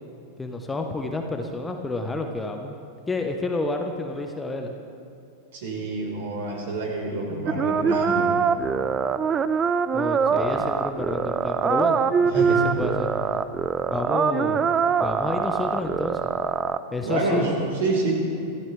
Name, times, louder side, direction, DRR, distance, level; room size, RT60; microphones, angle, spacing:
voice 1, 0.4-2.8 3.1-4.7 9.9-12.0 12.3-13.1 13.9-14.6 15.0-16.2 16.9-17.4, left 2 dB, 10° left, 4 dB, 1.2 m, -29 dB
voice 2, 5.5-8.3 12.3-12.6 17.0-18.1, right 2 dB, 55° right, -1 dB, 4.6 m, -27 dB
sound 1, 7.5-16.8, right 6 dB, 25° right, 0.6 m, -23 dB
26.0 x 15.5 x 3.5 m, 2.7 s
figure-of-eight pair, 90°, 0 cm